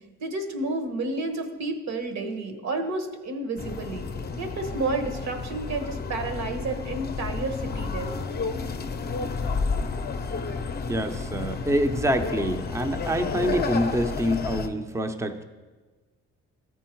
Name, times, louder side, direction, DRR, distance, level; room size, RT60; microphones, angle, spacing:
voice 1, 0.2-4.1 4.4-8.1, right 2 dB, 65° right, 6 dB, 1.2 m, -31 dB
sound 1, 3.6-14.7, left 4 dB, 30° left, 0.6 m, -31 dB
voice 2, 10.9-15.4, equal, 10° right, 8 dB, 0.6 m, -26 dB
13.5 x 4.6 x 4.5 m, 1.3 s
cardioid pair, 90°, 30 cm